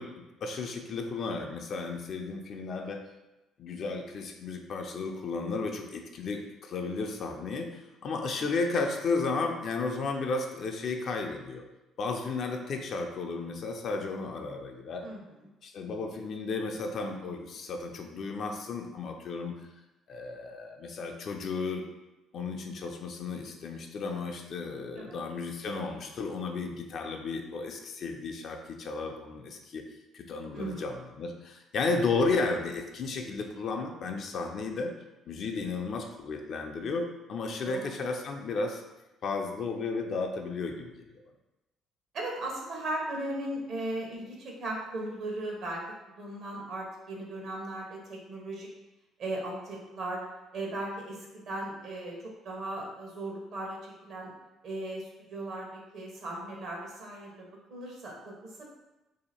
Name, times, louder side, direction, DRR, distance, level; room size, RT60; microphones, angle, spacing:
voice 1, 0.0-3.0 3.6-7.7 8.0-11.6 12.0-15.0 15.6-19.6 20.1-21.8 22.3-29.8 30.1-34.9 35.3-38.8 39.2-41.1, left 4 dB, 60° left, 3 dB, 0.4 m, -33 dB
voice 2, 30.5-30.9 37.6-37.8 42.1-48.7 49.2-50.2 50.5-54.3 54.6-58.7, right 1 dB, 65° right, -1 dB, 1.0 m, -37 dB
2.8 x 2.5 x 4.2 m, 1.0 s
cardioid pair, 90°, 0 cm